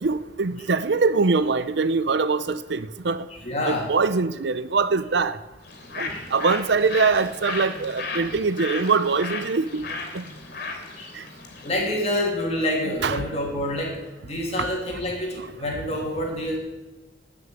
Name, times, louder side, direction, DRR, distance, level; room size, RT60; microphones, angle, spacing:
voice 1, 0.0-3.3 3.6-5.4 6.0-9.9 10.1-10.3 11.1-11.2 11.9-12.0 13.0-13.2 15.4-15.5, right 4 dB, 70° right, 14 dB, 0.6 m, -23 dB
voice 2, 3.4-3.9 6.1-6.2 11.0-11.1 11.6-14.0 14.2-16.6, left 1 dB, 35° left, 0 dB, 3.1 m, -27 dB
Bird, 5.6-11.8, left 3 dB, 60° left, 3.2 m, -35 dB
12.5 x 6.4 x 9.4 m, 1.1 s
head